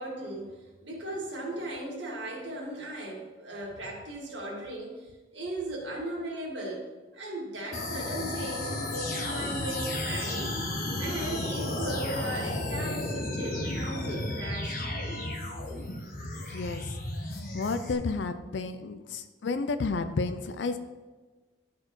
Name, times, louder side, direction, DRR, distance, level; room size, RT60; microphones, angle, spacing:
voice 1, 0.0-10.5 11.0-14.8, right 1 dB, 80° right, -2 dB, 1.9 m, -37 dB
sound 1, 7.7-17.9, left 1 dB, 50° left, 1.0 m, -33 dB
voice 2, 16.4-17.0 17.3-20.8, left 4 dB, 75° left, 9 dB, 0.5 m, -32 dB
12.0 x 4.3 x 3.1 m, 1.3 s
head